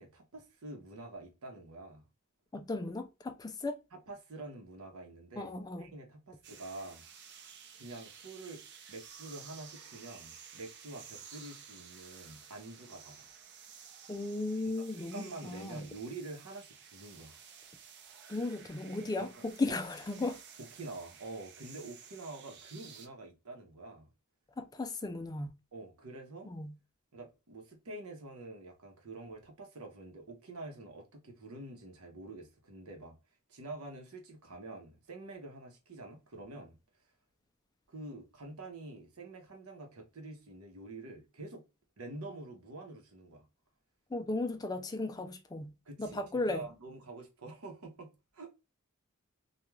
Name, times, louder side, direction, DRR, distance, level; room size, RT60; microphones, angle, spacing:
voice 1, 0.0-2.0 3.9-5.5 5.8-7.5 7.8-8.6 8.9-13.3 15.0-17.4 19.2-19.8 20.6-24.1 25.7-26.5 27.1-33.2 33.5-36.8 37.9-41.6 42.0-43.4 45.9-48.5, right 2 dB, 80° right, 0.8 m, -47 dB
voice 2, 2.5-3.8 5.4-5.9 14.1-15.9 18.3-20.4 24.6-25.5 26.5-26.7 44.1-45.7 46.0-46.7, left 2 dB, 15° left, 0.3 m, -36 dB
sound 1, 6.4-23.1, right 7 dB, 50° right, 0.4 m, -53 dB
2.3 x 2.3 x 3.0 m
head